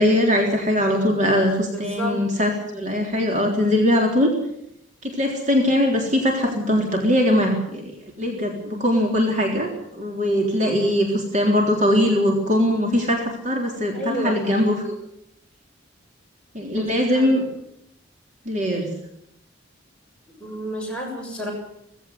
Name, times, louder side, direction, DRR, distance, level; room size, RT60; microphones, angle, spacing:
voice 1, 0.0-4.3 5.0-7.9 8.2-14.9 16.5-17.4 18.5-18.9, left 1 dB, 40° right, 1 dB, 3.8 m, -21 dB
voice 2, 1.7-2.2 13.9-14.4 16.8-17.4 20.4-21.5, equal, 5° left, -2 dB, 7.3 m, -29 dB
18.5 x 16.5 x 9.7 m, 0.78 s
head